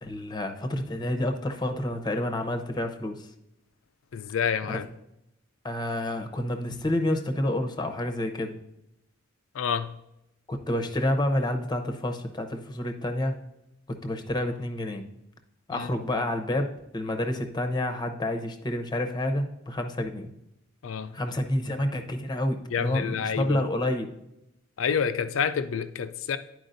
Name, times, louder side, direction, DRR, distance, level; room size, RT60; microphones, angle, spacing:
voice 1, 0.0-3.3 5.6-8.5 10.5-13.4 13.9-15.0 15.7-20.3 21.1-24.1, left 1 dB, 20° left, 6 dB, 0.8 m, -29 dB
voice 2, 4.1-4.9 9.5-10.0 15.7-15.9 20.8-21.2 22.7-23.6 24.8-26.4, left 7 dB, 75° left, 11 dB, 0.4 m, -28 dB
11.5 x 4.7 x 2.6 m, 0.85 s
head